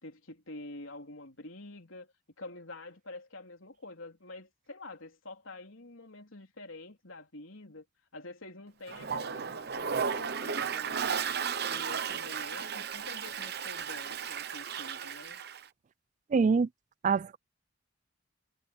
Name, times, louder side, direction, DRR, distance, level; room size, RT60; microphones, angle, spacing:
voice 1, 0.0-7.9 8.1-11.1 11.7-15.4, left 2 dB, 90° left, 3.9 m, -47 dB
Toilet flush, 8.9-15.6, right 6 dB, 55° right, 0.9 m, -34 dB
voice 2, 16.3-16.7 17.0-17.4, right 5 dB, 40° right, 0.3 m, -25 dB
head